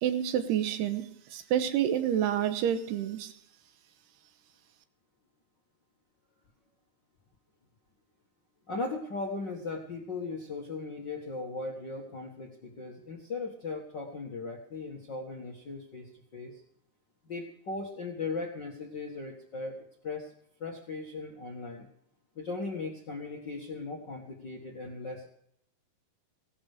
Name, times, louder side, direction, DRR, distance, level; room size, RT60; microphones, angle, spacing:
voice 1, 0.0-3.3, right 10 dB, 85° right, 9 dB, 3.1 m, -28 dB
voice 2, 8.7-16.6 17.2-20.3 20.6-21.9 22.3-25.3, left 3 dB, 45° left, -1 dB, 1.4 m, -38 dB
17.5 x 11.5 x 5.0 m, 0.70 s
omnidirectional pair, 4.6 m